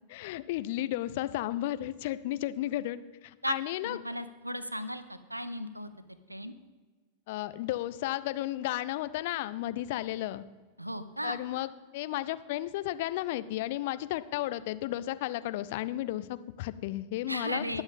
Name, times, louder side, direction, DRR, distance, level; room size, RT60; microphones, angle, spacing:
voice 1, 0.1-4.0 7.3-10.4 11.2-17.8, left 15 dB, 50° left, 14 dB, 0.5 m, -33 dB
voice 2, 3.8-5.9 6.3-6.5 10.8-11.4 17.3-17.8, equal, 85° right, 13 dB, 0.7 m, -35 dB
20.0 x 7.2 x 3.6 m, 1.4 s
figure-of-eight pair, 90°, 0 cm